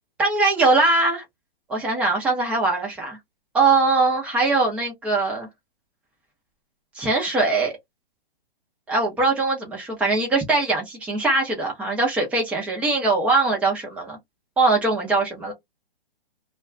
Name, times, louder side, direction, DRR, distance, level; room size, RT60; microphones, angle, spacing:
voice 1, 0.2-1.2 1.7-3.2 3.5-5.5 6.9-7.7 8.9-14.2 14.6-15.5, right 3 dB, 5° right, 0.6 m, -21 dB
2.3 x 2.3 x 3.2 m
hypercardioid pair, 150°, 30 cm